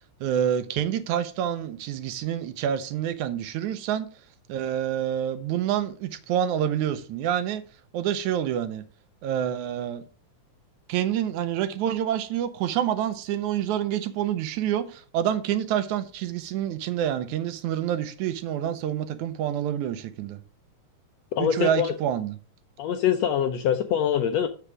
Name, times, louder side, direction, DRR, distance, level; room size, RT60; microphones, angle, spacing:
voice 1, 0.2-4.1 4.5-7.6 7.9-8.8 9.2-10.0 10.9-20.4 21.4-22.3, right 10 dB, 80° right, 2.1 m, -27 dB
voice 2, 21.3-21.9 22.8-24.5, left 9 dB, 75° left, 1.5 m, -24 dB
7.4 x 6.7 x 4.8 m
omnidirectional pair, 3.6 m